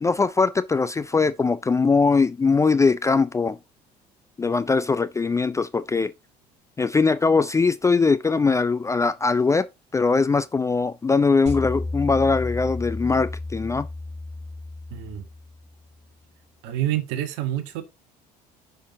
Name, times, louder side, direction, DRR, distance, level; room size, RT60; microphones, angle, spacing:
voice 1, 0.0-3.6 4.4-6.1 6.8-9.7 9.9-13.9, left 4 dB, 15° left, 0.4 m, -21 dB
sound 1, 11.5-15.8, left 2 dB, 35° right, 4.3 m, -32 dB
voice 2, 14.9-15.2 16.6-17.8, right 13 dB, 60° right, 1.2 m, -27 dB
10.5 x 5.6 x 2.8 m
figure-of-eight pair, 55°, 21 cm